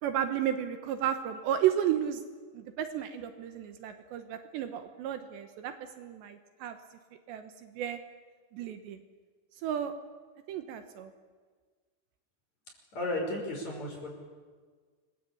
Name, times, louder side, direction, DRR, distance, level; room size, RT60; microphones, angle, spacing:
voice 1, 0.0-2.2 2.5-6.8 7.3-8.0 8.5-9.0 9.6-9.9 10.5-11.1, right 10 dB, 75° right, 8 dB, 3.2 m, -33 dB
voice 2, 12.9-14.1, left 1 dB, 35° left, 1 dB, 6.7 m, -34 dB
28.5 x 22.0 x 8.6 m, 1.5 s
omnidirectional pair, 5.5 m